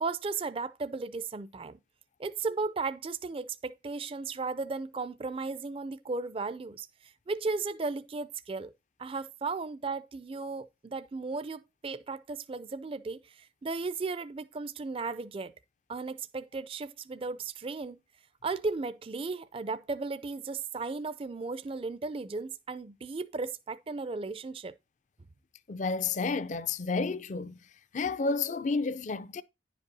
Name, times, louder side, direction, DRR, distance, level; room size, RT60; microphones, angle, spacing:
voice 1, 0.0-1.8 2.2-8.7 9.0-15.5 15.9-18.0 18.4-24.7, right 3 dB, 30° right, 0.4 m, -35 dB
voice 2, 25.7-27.6 27.9-29.4, left 4 dB, 40° left, 0.4 m, -31 dB
10.0 x 5.3 x 4.0 m
head